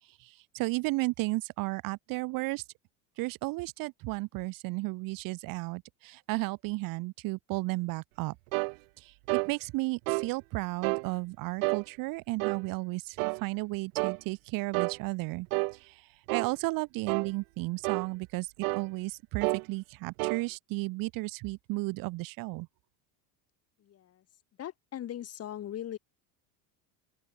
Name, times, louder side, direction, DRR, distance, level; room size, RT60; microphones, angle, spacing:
voice 1, 0.2-2.6 3.2-8.3 9.0-15.5 15.7-22.7, right 23 dB, 55° right, 1.1 m, -34 dB
sound 1, 8.5-8.7 9.3-9.5 10.1-10.3 10.8-11.1 11.6-11.8 12.4-12.6 13.2-13.4 14.0-14.2 14.7-15.0 15.5-15.7 16.3-16.5 17.1-17.3 17.8-18.1 18.6-18.9 19.4-19.6 20.2-20.4, right 35 dB, 80° right, 2.0 m, -30 dB
voice 2, 23.8-24.2 24.6-26.0, left 11 dB, 35° left, 6.7 m, -40 dB
open air
cardioid pair, 155°, 41 cm